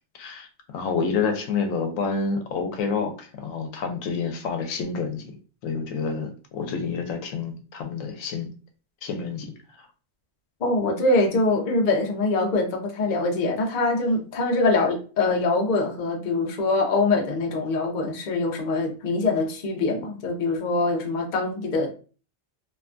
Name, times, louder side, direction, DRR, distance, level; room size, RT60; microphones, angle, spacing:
voice 1, 0.2-5.3 5.6-8.5 9.0-9.5, left 5 dB, 85° left, 5 dB, 1.0 m, -28 dB
voice 2, 10.6-21.9, left 2 dB, 50° left, 1 dB, 0.6 m, -23 dB
2.9 x 2.2 x 2.4 m, 0.37 s
omnidirectional pair, 1.4 m